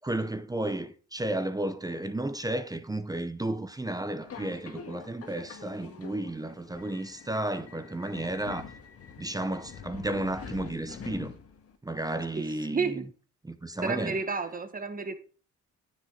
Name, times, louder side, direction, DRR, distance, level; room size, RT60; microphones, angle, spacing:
voice 1, 0.0-8.7 9.2-11.4 11.8-13.0 13.5-14.2, right 1 dB, 10° right, 0.7 m, -33 dB
Subway metro underground, 4.2-11.8, left 6 dB, 50° left, 1.7 m, -45 dB
voice 2, 12.4-13.0 13.8-15.2, right 4 dB, 30° right, 1.4 m, -31 dB
9.6 x 7.5 x 4.0 m
cardioid pair, 90°, 30 cm